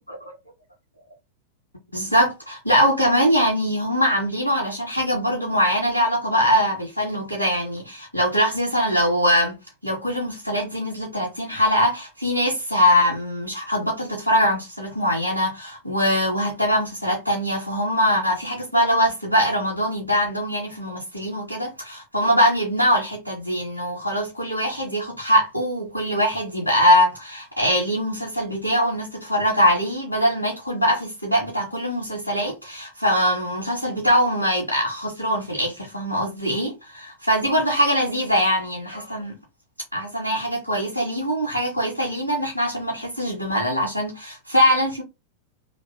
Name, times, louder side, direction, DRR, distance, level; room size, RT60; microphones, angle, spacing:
voice 1, 1.9-9.6 9.8-39.4 39.9-45.0, equal, 90° right, 1.7 m, -22 dB
3.4 x 3.2 x 4.4 m
figure-of-eight pair, 90°, 0 cm